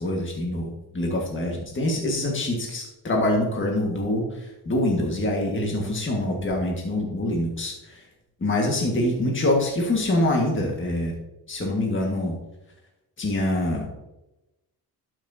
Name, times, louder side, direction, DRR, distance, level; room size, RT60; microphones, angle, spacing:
voice 1, 0.0-8.0 8.4-11.1 11.5-12.3 13.2-13.9, left 1 dB, 30° left, 0 dB, 1.7 m, -25 dB
12.0 x 6.1 x 2.8 m, 0.96 s
cardioid pair, 90°, 39 cm